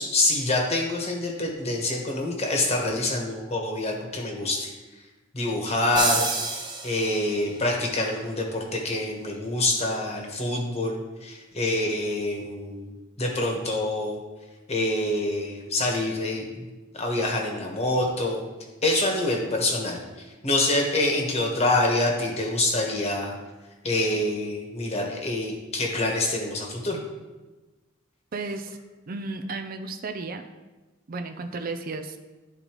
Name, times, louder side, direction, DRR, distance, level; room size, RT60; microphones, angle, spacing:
voice 1, 0.0-4.7 5.3-6.3 6.8-12.9 13.2-14.2 14.7-16.6 16.9-18.4 18.8-23.3 23.8-27.0, left 2 dB, 35° left, 1 dB, 1.1 m, -26 dB
sound 1, 6.0-7.6, right 3 dB, 25° right, 1.0 m, -28 dB
voice 2, 28.3-28.8 29.1-30.4 31.1-32.2, right 3 dB, 45° right, 7 dB, 0.4 m, -33 dB
11.5 x 4.0 x 3.0 m, 1.2 s
head